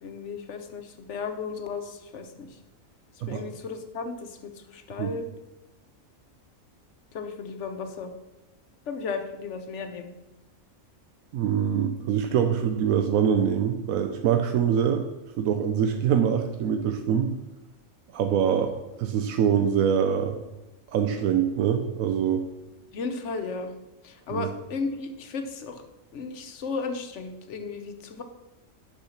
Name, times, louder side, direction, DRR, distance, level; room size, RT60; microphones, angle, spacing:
voice 1, 0.0-2.5 3.3-5.3 7.1-8.1 8.9-10.1 22.9-23.7 24.0-25.8 26.1-28.2, left 4 dB, 60° left, 7 dB, 1.1 m, -34 dB
voice 2, 11.3-15.0 15.4-17.3 18.1-18.7 19.0-20.4 20.9-22.4 24.3-24.5, right 8 dB, 90° right, 6 dB, 1.1 m, -24 dB
6.8 x 5.7 x 5.7 m, 1.0 s
omnidirectional pair, 1.4 m